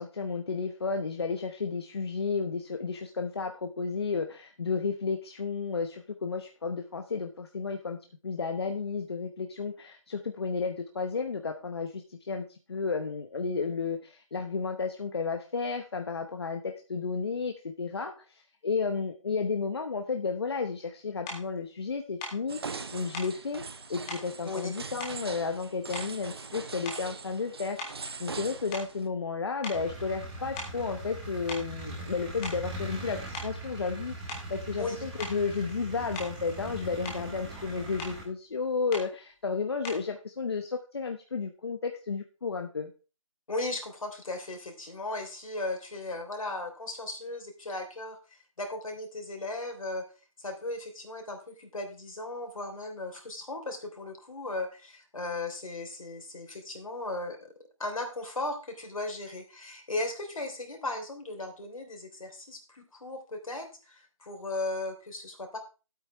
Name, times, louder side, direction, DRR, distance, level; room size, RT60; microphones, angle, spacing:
voice 1, 0.0-8.0 8.2-23.6 23.9-27.8 28.2-42.9, left 4 dB, 45° left, 5 dB, 1.0 m, -32 dB
sound 1, 21.3-21.5 22.2-22.4 23.1-23.4 24.1-24.3 25.0-25.6 25.9-26.3 26.8-27.2 27.8-29.3 29.6-29.9 30.6-30.8 31.5-31.7 32.2-32.7 33.3-33.6 34.3-34.5 35.2-35.4 36.1-36.4 36.8-37.3 38.0-38.2 38.9-39.1 39.8-40.1, left 1 dB, 5° left, 0.5 m, -40 dB
sound 2, 22.5-29.1, right 4 dB, 45° right, 0.9 m, -41 dB
sound 3, 29.7-38.2, right 1 dB, 15° right, 1.8 m, -41 dB
voice 2, 34.8-35.1 43.5-48.2 48.6-50.1 50.4-57.5 57.8-65.6, left 2 dB, 75° left, 4 dB, 3.6 m, -36 dB
12.5 x 8.5 x 3.5 m, 0.33 s
figure-of-eight pair, 170°, 18 cm